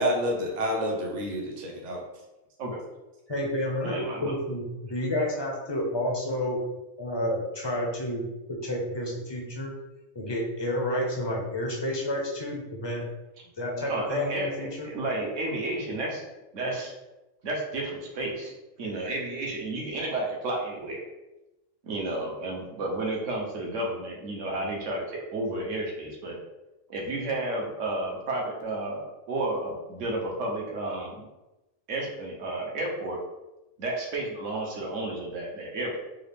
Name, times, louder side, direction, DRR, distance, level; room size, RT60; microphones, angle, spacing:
voice 1, 0.0-2.0, equal, 40° right, 0 dB, 0.7 m, -28 dB
voice 2, 3.3-6.6 7.0-9.7 10.1-13.0 13.6-14.9, left 1 dB, 30° left, -2 dB, 0.5 m, -30 dB
voice 3, 3.8-4.3 13.8-16.2 16.5-16.9 17.4-18.5 18.8-21.0 21.9-25.0 25.3-26.4 26.9-31.2 31.9-33.2 33.8-36.0, right 2 dB, 70° right, -2 dB, 1.2 m, -31 dB
3.7 x 2.4 x 3.4 m, 1.0 s
omnidirectional pair, 1.4 m